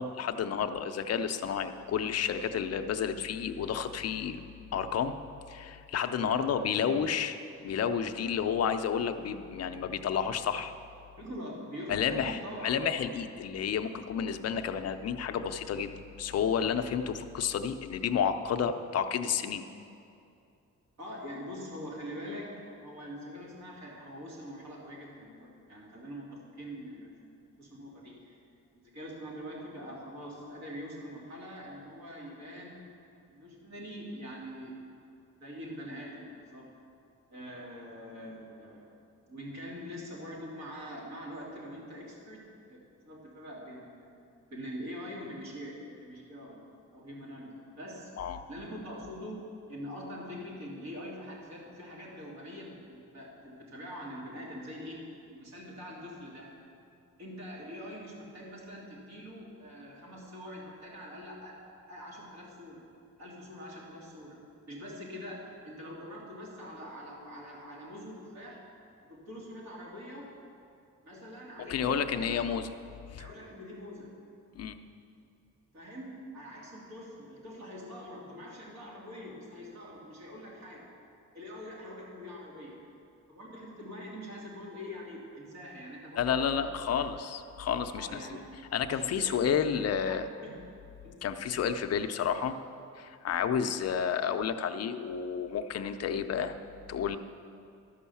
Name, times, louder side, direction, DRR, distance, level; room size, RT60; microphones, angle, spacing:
voice 1, 0.0-4.4 4.7-5.2 5.5-10.7 11.9-15.9 16.2-19.6 48.2-48.4 71.7-72.7 73.1-73.2 74.5-74.8 86.2-88.4 88.7-90.3 91.2-92.5 93.0-96.6 96.9-97.2, left 7 dB, 50° left, 8 dB, 0.5 m, -31 dB
voice 2, 11.2-12.7 21.0-28.4 28.7-32.9 33.3-34.8 35.4-36.7 37.3-38.9 39.3-44.1 44.5-46.6 46.9-48.1 48.5-56.5 57.2-61.6 61.9-62.9 63.2-64.4 64.6-68.6 69.1-70.3 71.0-72.4 73.2-74.1 75.7-80.9 81.3-82.8 83.3-86.9 88.0-88.4 88.9-89.4 89.9-90.5 91.0-91.2, equal, 55° right, -4 dB, 2.7 m, -44 dB
12.5 x 5.4 x 7.0 m, 2.5 s
wide cardioid pair, 170°, 32 cm